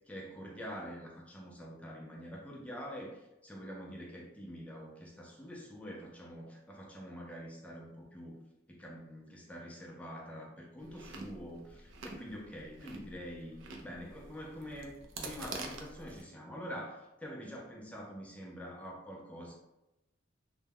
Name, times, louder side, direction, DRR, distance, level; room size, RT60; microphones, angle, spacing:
voice 1, 0.1-14.9 15.2-19.5, equal, 5° left, -2 dB, 0.4 m, -46 dB
Chewing mastication, 10.8-16.2, right 3 dB, 85° right, 0.4 m, -47 dB
2.2 x 2.1 x 3.4 m, 0.93 s
head